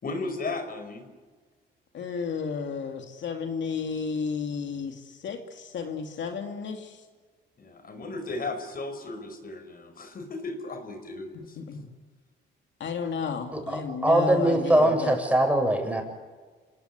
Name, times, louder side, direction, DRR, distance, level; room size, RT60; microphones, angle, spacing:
voice 1, 0.0-1.1 7.6-11.6, left 3 dB, 45° left, 8 dB, 5.2 m, -35 dB
voice 2, 1.9-7.0 11.6-11.8 12.8-15.1, left 5 dB, 65° left, 3 dB, 2.7 m, -32 dB
voice 3, 13.5-16.0, right 1 dB, 5° right, 4 dB, 7.2 m, -22 dB
27.5 x 18.5 x 9.7 m, 1.4 s
cardioid pair, 90°, 20 cm